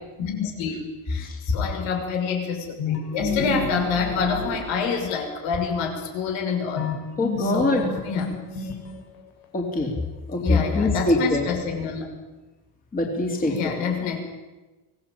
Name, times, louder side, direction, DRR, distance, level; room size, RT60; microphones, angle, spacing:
voice 1, 0.2-6.9 7.4-8.7 10.4-12.1 13.4-14.2, left 6 dB, 70° left, 3 dB, 6.2 m, -27 dB
sound 1, 2.8-5.3 6.8-9.2, left 3 dB, 90° left, 6.2 m, -30 dB
voice 2, 7.2-7.8 9.5-9.9 10.3-11.4 12.9-13.8, left 2 dB, 20° left, 0 dB, 3.6 m, -23 dB
24.5 x 18.0 x 8.8 m, 1.1 s
cardioid pair, 170°, 47 cm